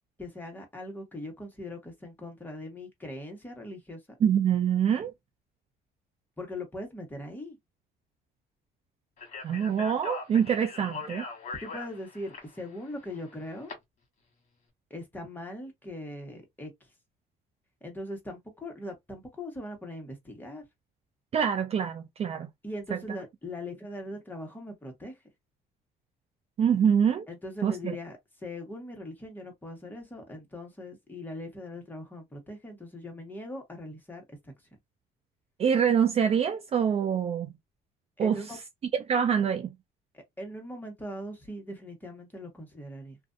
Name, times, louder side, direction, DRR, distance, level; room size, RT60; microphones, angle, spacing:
voice 1, 0.2-4.2 6.4-7.6 11.6-13.7 14.9-16.9 17.8-20.7 22.6-25.2 27.3-34.5 38.2-38.6 40.1-43.2, left 1 dB, 10° left, 1.1 m, -40 dB
voice 2, 4.2-5.1 9.4-11.3 21.3-22.5 26.6-27.2 27.6-27.9 35.6-37.5 38.2-38.4 39.1-39.7, right 8 dB, 35° right, 0.4 m, -25 dB
Speech, 9.2-13.7, left 4 dB, 45° left, 1.2 m, -41 dB
2.5 x 2.3 x 2.5 m
cardioid pair, 110°, 17 cm